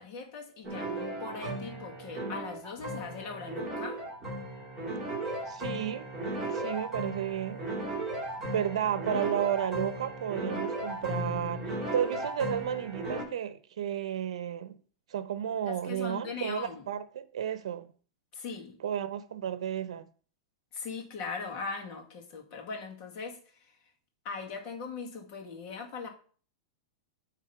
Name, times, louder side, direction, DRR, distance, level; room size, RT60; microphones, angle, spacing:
voice 1, 0.0-4.0 15.7-16.8 18.3-18.8 20.7-23.7 24.2-26.1, left 4 dB, 40° left, 2.2 m, -40 dB
sound 1, 0.6-13.2, right 1 dB, 5° right, 3.5 m, -36 dB
voice 2, 5.5-6.1 6.5-7.6 8.5-14.8 15.1-17.9 18.8-20.0, right 10 dB, 85° right, 0.8 m, -32 dB
9.3 x 3.7 x 5.8 m
supercardioid pair, 150°, 3 cm